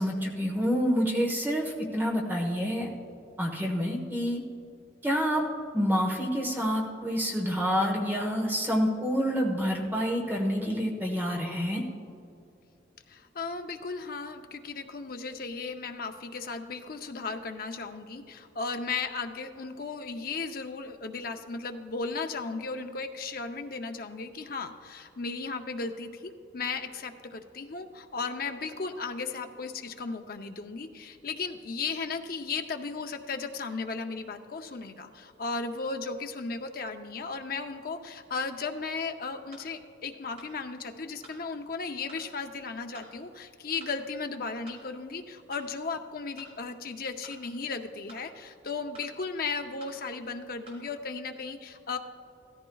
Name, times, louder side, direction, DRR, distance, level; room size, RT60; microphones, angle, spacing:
voice 1, 0.0-2.9 3.4-4.4 5.0-5.4 5.7-11.8, equal, 10° right, 0 dB, 1.2 m, -28 dB
voice 2, 13.1-52.0, left 4 dB, 50° left, 6 dB, 0.6 m, -35 dB
sound 1, 39.5-39.7 40.4-40.5 41.2-41.4 42.1-42.3 42.9-43.1 43.8-44.0 44.7-44.8 45.5-45.7 46.4-46.5 47.2-47.4 48.1-48.3 48.9-49.1 49.8-50.0 50.7-50.8, right 2 dB, 35° right, 2.9 m, -50 dB
16.0 x 14.0 x 2.3 m, 2.6 s
head